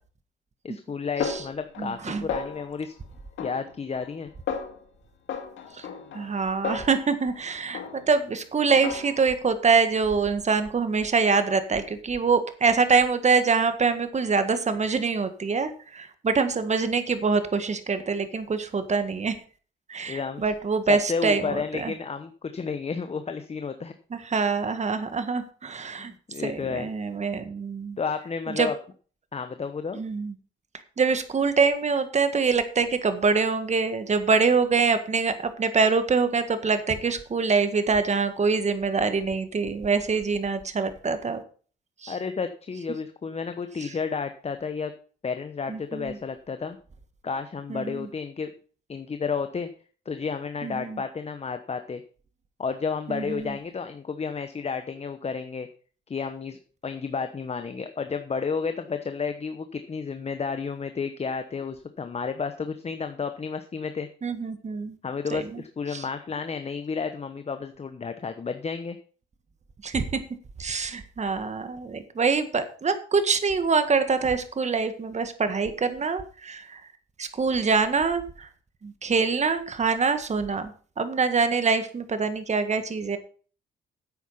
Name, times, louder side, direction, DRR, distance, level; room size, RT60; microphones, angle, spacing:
voice 1, 0.6-2.9 3.4-4.3 20.1-20.4 20.9-23.9 26.0-26.9 28.0-28.7 29.3-30.0 42.1-44.9 45.2-46.8 47.2-48.5 48.9-49.7 50.1-52.0 52.6-55.7 56.1-64.1 65.0-69.0, left 5 dB, 30° left, 8 dB, 1.0 m, -31 dB
Snare drum, 1.2-2.0 2.3-2.9 3.4-4.2 4.5-4.9 5.3-7.4 7.7-8.3 8.7-9.4, left 6 dB, 75° left, 2.1 m, -35 dB
voice 2, 1.8-2.3 5.7-5.9 6.1-19.4 19.9-21.9 24.1-26.1 26.4-28.0 28.5-28.7 29.9-30.3 31.0-41.4 42.0-42.2 43.8-43.9 45.7-46.2 47.7-48.1 50.6-51.0 53.1-53.5 64.2-65.0 65.3-65.6 65.9-66.0 69.8-70.2 70.6-76.8 77.2-78.5 78.8-83.2, right 5 dB, 35° right, 10 dB, 1.7 m, -25 dB
9.9 x 8.3 x 5.7 m, 0.41 s
cardioid pair, 90°, 20 cm